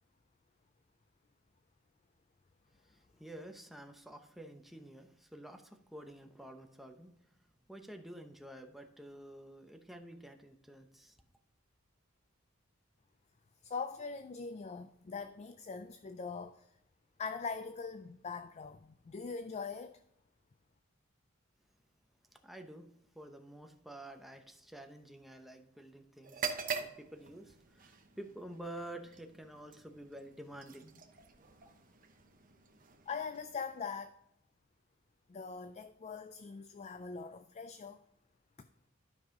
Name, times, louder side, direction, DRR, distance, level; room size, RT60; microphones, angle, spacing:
voice 1, 2.8-7.2 7.7-11.2 22.3-22.9 23.1-31.0, right 1 dB, ahead, 0.8 m, -50 dB
voice 2, 13.6-16.7 17.2-20.0 33.1-34.2 35.3-38.0 38.6-38.7, left 5 dB, 35° left, 0.4 m, -42 dB
sound 1, 26.2-34.1, right 6 dB, 40° right, 0.9 m, -45 dB
12.0 x 5.5 x 3.8 m
head